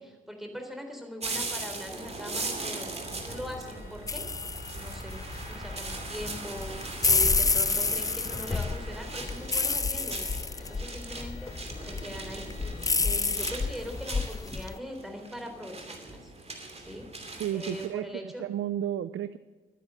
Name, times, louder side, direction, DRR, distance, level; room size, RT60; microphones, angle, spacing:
voice 1, 0.0-2.9 3.2-4.3 4.8-6.7 7.0-10.3 10.6-11.5 11.9-12.5 13.0-17.1 17.5-18.4, equal, ahead, 4 dB, 3.7 m, -41 dB
sound 1, 1.2-17.9, right 2 dB, 30° right, 2.8 m, -40 dB
sound 2, 2.4-13.8, left 2 dB, 40° left, 5.7 m, -53 dB
sound 3, 4.1-14.8, left 4 dB, 15° left, 0.4 m, -30 dB
voice 2, 17.4-19.4, right 11 dB, 70° right, 14 dB, 0.5 m, -32 dB
12.0 x 10.0 x 7.5 m, 1.3 s
cardioid pair, 65°, 21 cm